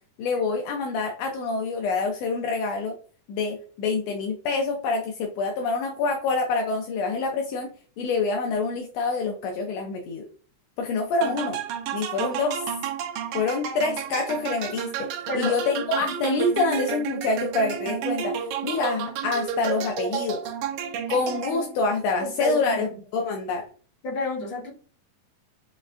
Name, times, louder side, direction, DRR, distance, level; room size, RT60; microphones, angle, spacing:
voice 1, 0.2-2.9 3.3-10.3 10.8-11.6 11.9-12.6 13.3-15.1 15.3-20.4 21.1-23.6, left 3 dB, 80° left, 2 dB, 1.5 m, -26 dB
sound 1, 11.2-21.9, right 8 dB, 85° right, 2.1 m, -31 dB
voice 2, 22.2-22.8 24.0-24.7, left 1 dB, 45° left, -4 dB, 2.0 m, -29 dB
5.3 x 3.1 x 2.4 m, 0.41 s
omnidirectional pair, 3.6 m